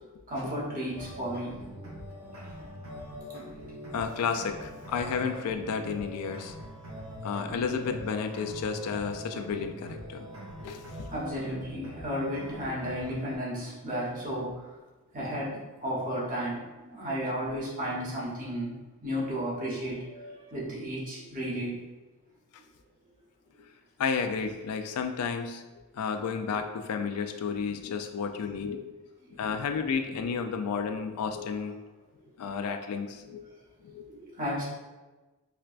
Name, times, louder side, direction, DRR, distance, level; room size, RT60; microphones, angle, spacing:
voice 1, 0.3-1.8 3.6-3.7 11.1-14.5 15.1-18.7 19.0-21.8 29.2-29.3 34.1-34.6, equal, 40° right, -7 dB, 1.0 m, -33 dB
sound 1, 0.9-13.4, equal, 70° right, 0.9 m, -43 dB
voice 2, 3.9-6.6 7.2-10.3 10.6-11.1 17.2-17.4 24.0-25.6 26.0-28.8 29.3-31.8 32.4-33.4 33.8-34.0, left 6 dB, 85° left, 7 dB, 0.3 m, -32 dB
4.4 x 2.2 x 2.4 m, 1.2 s
head